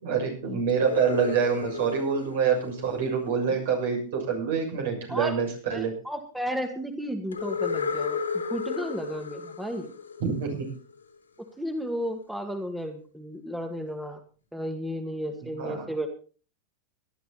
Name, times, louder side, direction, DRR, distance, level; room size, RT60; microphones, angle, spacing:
voice 1, 0.0-5.9 10.2-10.5 15.6-15.9, right 6 dB, 65° right, 2 dB, 6.7 m, -26 dB
sound 1, 0.7-3.7 7.3-11.0, left 5 dB, 90° left, 3.1 m, -34 dB
voice 2, 5.7-8.2 8.5-9.9 11.6-14.2 14.5-16.1, equal, 5° right, 6 dB, 2.0 m, -33 dB
18.0 x 11.5 x 4.2 m, 0.40 s
hypercardioid pair, 95°, 0 cm